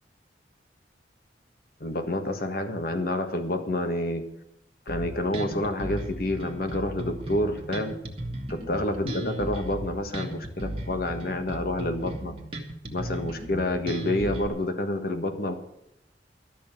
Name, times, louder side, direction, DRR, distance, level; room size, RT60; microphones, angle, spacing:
voice 1, 1.8-4.3 4.9-8.0 8.5-12.4 12.9-15.5, left 1 dB, 55° left, 7 dB, 1.6 m, -28 dB
Bass guitar, 4.9-14.5, right 1 dB, 30° right, 1.8 m, -36 dB
12.5 x 6.6 x 9.0 m, 0.80 s
head